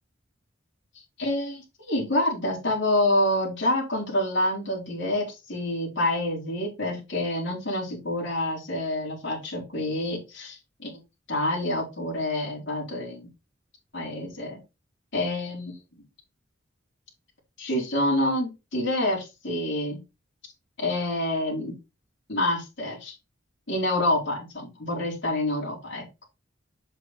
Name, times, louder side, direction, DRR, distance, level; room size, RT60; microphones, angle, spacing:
voice 1, 1.2-11.0 11.3-13.3 13.9-14.6 15.1-15.8 17.6-20.0 20.8-21.7 22.3-23.1 23.7-26.0, left 1 dB, 65° left, -5 dB, 4.4 m, -27 dB
7.4 x 6.6 x 3.2 m, 0.25 s
head